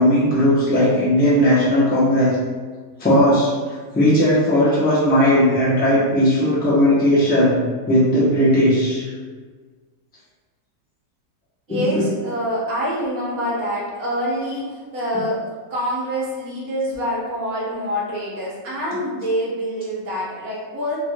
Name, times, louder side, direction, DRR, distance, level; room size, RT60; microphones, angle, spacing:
voice 1, 0.0-2.4 3.0-3.5 3.9-9.1 11.7-12.0, equal, 15° left, -8 dB, 0.3 m, -17 dB
voice 2, 11.7-21.0, equal, 60° right, -6 dB, 1.2 m, -26 dB
3.3 x 3.1 x 2.2 m, 1.5 s
omnidirectional pair, 1.9 m